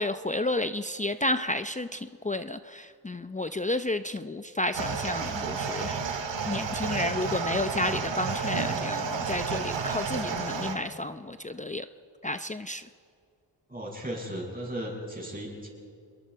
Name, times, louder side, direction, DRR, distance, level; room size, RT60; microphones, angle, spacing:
voice 1, 0.0-6.0 6.5-11.9 12.2-12.9, left 1 dB, 15° left, 10 dB, 0.6 m, -31 dB
sound 1, 4.7-10.8, right 5 dB, 80° right, 2.0 m, -31 dB
voice 2, 13.7-15.7, equal, 20° right, -1 dB, 7.3 m, -36 dB
27.0 x 22.0 x 4.7 m, 2.4 s
cardioid pair, 60°, 43 cm